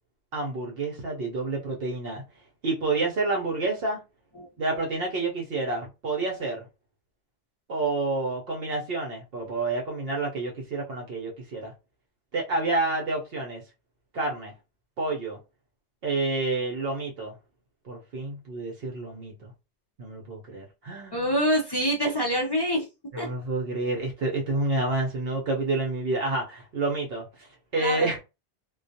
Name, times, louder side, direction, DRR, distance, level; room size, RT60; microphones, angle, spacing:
voice 1, 0.3-2.2 2.6-4.0 4.6-6.7 7.7-11.7 12.3-13.6 14.1-14.5 15.0-15.4 16.0-17.4 17.8-19.5 20.0-21.2 23.1-27.3 27.7-28.2, right 2 dB, 65° right, 0.8 m, -29 dB
voice 2, 21.1-22.9 23.2-23.3 27.7-28.1, equal, 40° left, 0.3 m, -25 dB
2.3 x 2.2 x 2.6 m
omnidirectional pair, 1.1 m